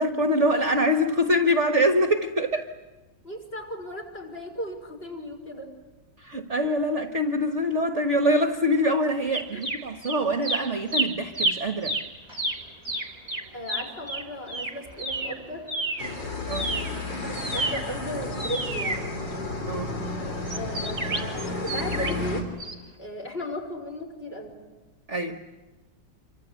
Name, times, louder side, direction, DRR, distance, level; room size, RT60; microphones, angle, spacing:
voice 1, 0.0-2.7 6.2-12.0 16.5-16.7 19.7-20.0 25.1-25.4, equal, 40° right, 6 dB, 1.5 m, -24 dB
voice 2, 3.2-5.7 9.5-9.6 13.5-15.7 16.6-19.1 20.5-22.4 23.0-24.6, equal, 30° left, 2 dB, 5.7 m, -36 dB
sound 1, 9.3-10.2 10.4-16.1 16.4-19.7 20.5-22.3 22.6-22.7, right 2 dB, 20° right, 2.7 m, -30 dB
sound 2, 16.0-22.4, left 2 dB, 70° left, 4.2 m, -32 dB
27.5 x 25.5 x 8.3 m, 1.2 s
omnidirectional pair, 2.0 m